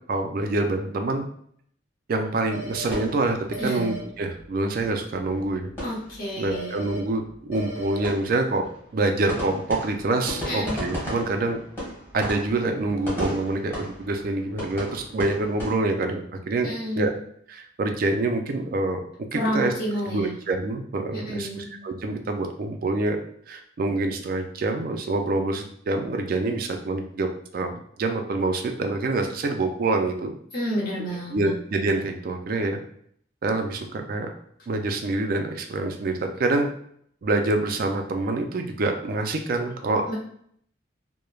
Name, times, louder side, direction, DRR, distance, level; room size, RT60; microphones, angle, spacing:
voice 1, 0.1-1.3 2.1-3.4 3.6-5.7 6.4-8.6 8.9-11.6 12.1-17.1 17.5-19.0 19.3-19.7 20.1-23.2 23.5-27.3 27.5-27.7 28.0-30.3 31.3-32.8 33.4-34.3 34.7-36.7 37.2-40.0, right 2 dB, 50° right, 5 dB, 0.3 m, -26 dB
sound 1, 2.5-3.0 3.5-4.0 6.5-7.0 7.5-8.0, right 1 dB, 70° left, 0.9 m, -36 dB
sound 2, 2.9-4.0 4.4-4.5 4.8-4.9 5.1-6.6 6.8-7.0 7.2-15.7, equal, 15° left, 1.2 m, -36 dB
voice 2, 3.6-3.9 5.8-6.8 10.4-10.7 16.6-17.1 19.3-20.4 21.1-21.7 30.5-31.5 40.1-40.2, equal, 50° left, -7 dB, 1.1 m, -30 dB
3.1 x 2.1 x 2.3 m, 0.65 s
head